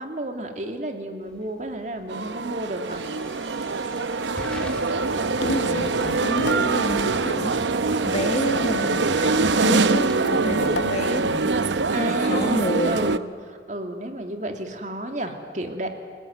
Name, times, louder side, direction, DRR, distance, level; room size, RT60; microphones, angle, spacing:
voice 1, 0.0-3.0 10.4-10.8 11.9-15.9, right 1 dB, 40° right, 5 dB, 2.6 m, -31 dB
Hiss / Fire / Tick, 1.2-11.6, equal, 5° left, 2.9 m, -42 dB
sound 1, 2.1-13.2, right 3 dB, 85° right, 0.8 m, -24 dB
sound 2, 5.4-6.8 8.6-11.0, left 2 dB, 85° left, 0.7 m, -33 dB
voice 2, 5.4-7.6 8.1-11.5 12.0-13.0, left 1 dB, 35° left, 8 dB, 1.2 m, -29 dB
29.5 x 19.5 x 9.3 m, 2.2 s
head